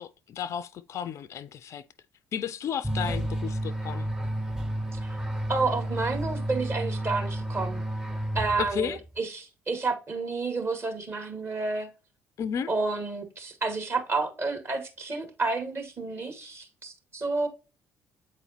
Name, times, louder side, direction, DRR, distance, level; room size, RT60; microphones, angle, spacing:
voice 1, 0.0-1.8 2.3-4.1 8.6-9.0 12.4-12.7, left 8 dB, 45° left, 0.4 m, -33 dB
sound 1, 2.8-9.0, right 1 dB, 10° right, 0.7 m, -31 dB
voice 2, 5.5-7.8 8.4-11.9 12.7-17.5, right 3 dB, 35° right, 1.6 m, -30 dB
8.3 x 4.1 x 2.8 m
figure-of-eight pair, 50°, 7 cm